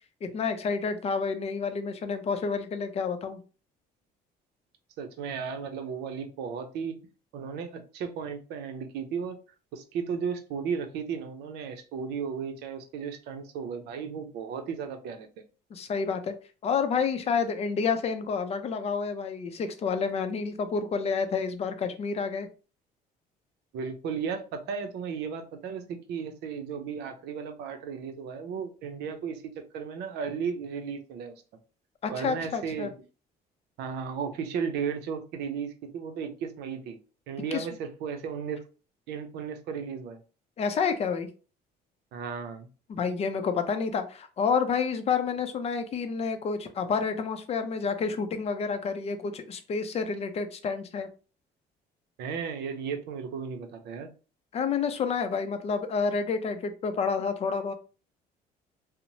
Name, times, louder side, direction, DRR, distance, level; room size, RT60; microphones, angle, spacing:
voice 1, 0.2-3.4 15.7-16.3 16.6-22.5 32.0-32.9 37.5-37.7 40.6-41.3 42.9-51.1 54.5-57.7, left 5 dB, 40° left, 9 dB, 0.5 m, -29 dB
voice 2, 5.0-7.0 7.3-9.4 9.7-15.3 23.7-31.3 32.1-32.9 33.8-37.0 37.3-38.6 39.1-40.2 42.1-42.7 52.2-54.1, right 6 dB, 80° right, 7 dB, 0.6 m, -35 dB
2.9 x 2.0 x 2.6 m, 0.35 s
cardioid pair, 110°, 17 cm